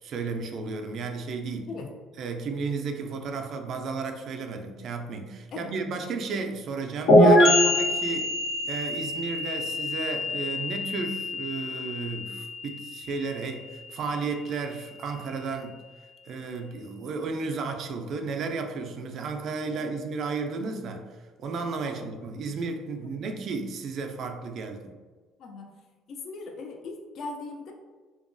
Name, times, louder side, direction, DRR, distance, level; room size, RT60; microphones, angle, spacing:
voice 1, 0.0-1.7 2.2-8.3 8.6-15.8 16.3-21.1 21.4-24.8, right 4 dB, 50° right, 4 dB, 0.3 m, -33 dB
sound 1, 7.1-14.6, left 1 dB, 70° left, 0.9 m, -24 dB
voice 2, 26.1-27.7, left 3 dB, 50° left, 2 dB, 0.4 m, -39 dB
2.7 x 2.2 x 2.5 m, 1.3 s
cardioid pair, 130°, 0 cm